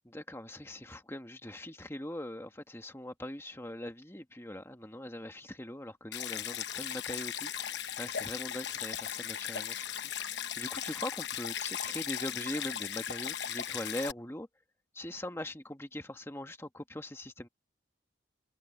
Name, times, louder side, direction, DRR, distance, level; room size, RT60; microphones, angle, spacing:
voice 1, 0.0-14.5 14.9-17.5, left 1 dB, 15° left, 1.5 m, -41 dB
Stream, 6.1-14.1, left 9 dB, 60° left, 1.1 m, -37 dB
head